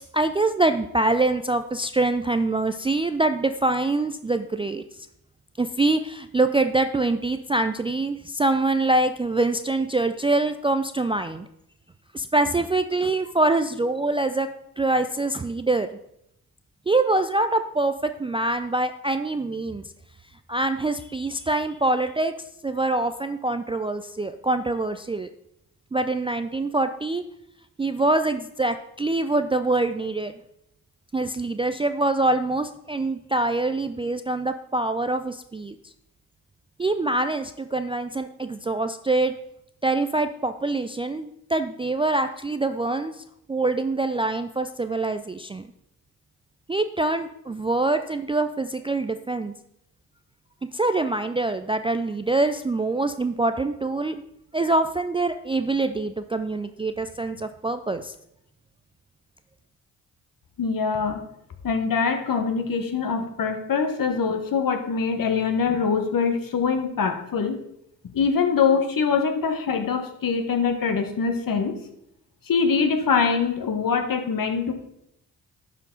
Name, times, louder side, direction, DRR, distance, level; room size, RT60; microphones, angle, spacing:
voice 1, 0.0-4.8 5.6-11.5 12.1-14.5 14.8-15.9 16.9-17.9 18.2-19.9 20.5-22.3 22.6-25.3 25.9-27.2 27.8-30.3 31.1-35.8 36.8-39.3 39.8-45.7 46.7-49.5 50.7-54.2 54.5-58.1, right 2 dB, 15° right, 9 dB, 0.4 m, -24 dB
voice 2, 60.6-61.2 61.6-67.6 68.1-71.7 72.5-74.7, left 5 dB, 50° left, 7 dB, 1.3 m, -23 dB
11.5 x 4.5 x 3.9 m, 0.78 s
hypercardioid pair, 40°, 42 cm